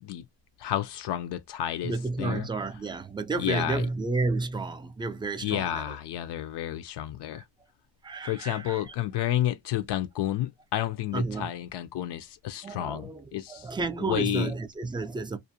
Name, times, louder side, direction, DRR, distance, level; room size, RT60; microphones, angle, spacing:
voice 1, 0.6-1.9 2.2-2.5 3.4-3.9 5.4-7.4 8.2-13.7 14.0-14.5, left 12 dB, 60° left, 0.5 m, -30 dB
voice 2, 1.8-6.0 7.3-7.4 8.0-8.9 11.1-11.5 12.6-15.4, right 3 dB, 10° right, 0.3 m, -31 dB
2.5 x 2.1 x 2.7 m
cardioid pair, 95°, 46 cm